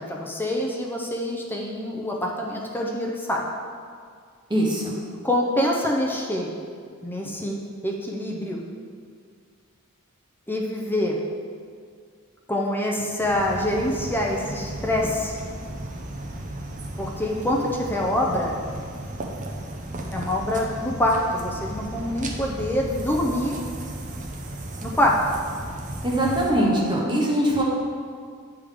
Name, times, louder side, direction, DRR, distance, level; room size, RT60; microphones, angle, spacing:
voice 1, 0.0-3.5 5.2-6.5 7.0-7.6 7.8-8.6 10.5-11.2 12.5-15.4 17.0-18.6 20.1-23.5 24.8-25.2, left 1 dB, 10° left, -2 dB, 0.6 m, -25 dB
voice 2, 4.5-5.0 26.0-27.6, right 1 dB, 20° right, -3 dB, 1.1 m, -22 dB
sound 1, 13.2-26.5, right 1 dB, 35° right, 0.7 m, -35 dB
8.8 x 3.5 x 5.0 m, 2.1 s
head